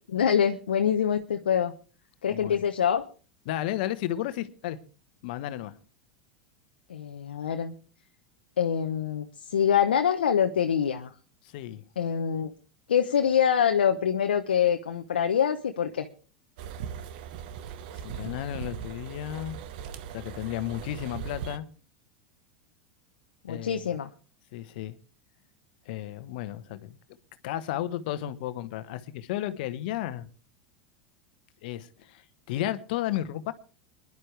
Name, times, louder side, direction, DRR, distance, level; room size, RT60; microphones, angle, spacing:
voice 1, 0.1-1.7 2.2-3.0 6.9-7.7 8.6-11.1 12.0-12.5 12.9-16.1 23.4-24.1, left 8 dB, 85° left, 0.9 m, -25 dB
voice 2, 3.5-4.8 5.2-5.7 11.4-11.8 18.0-19.6 20.1-21.7 23.5-23.8 24.5-24.9 25.8-27.0 27.4-30.3 31.6-32.2 32.5-33.5, left 13 dB, 65° left, 1.2 m, -33 dB
sound 1, 16.6-21.6, right 8 dB, 65° right, 1.2 m, -39 dB
24.0 x 11.0 x 3.3 m
hypercardioid pair, 90°, 5 cm